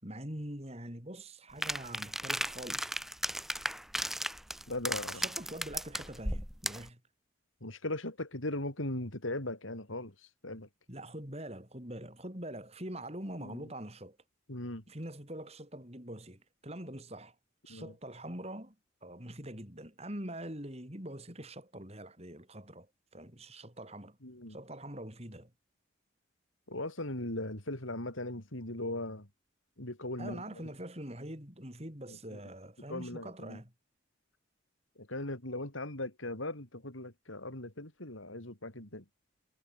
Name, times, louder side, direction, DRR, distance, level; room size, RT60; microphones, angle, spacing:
voice 1, 0.0-3.0 5.1-7.0 10.9-14.2 14.9-17.3 17.7-18.7 19.0-22.9 23.1-24.2 24.5-25.5 30.2-33.7, right 1 dB, 30° right, 6.0 m, -44 dB
sound 1, 1.6-6.9, equal, ahead, 3.2 m, -35 dB
voice 2, 4.7-5.3 7.6-10.1 10.4-10.7 13.4-13.7 14.5-14.8 17.7-17.9 24.2-24.6 26.7-29.3 29.8-30.4 32.1-32.4 32.9-33.6 35.0-39.0, left 1 dB, 85° left, 5.8 m, -39 dB
head